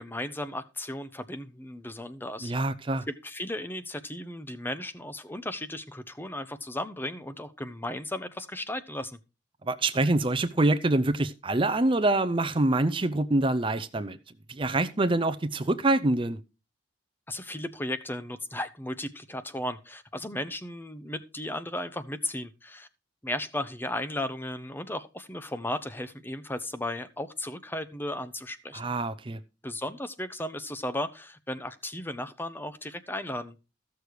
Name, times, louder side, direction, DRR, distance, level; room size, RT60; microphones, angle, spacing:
voice 1, 0.0-2.5 3.1-9.2 17.3-22.9 23.2-28.8 29.6-33.6, left 1 dB, 10° left, 0.7 m, -35 dB
voice 2, 2.4-3.1 9.7-14.2 14.5-16.4 28.7-29.4, right 2 dB, 25° right, 0.6 m, -25 dB
14.5 x 6.7 x 4.7 m
head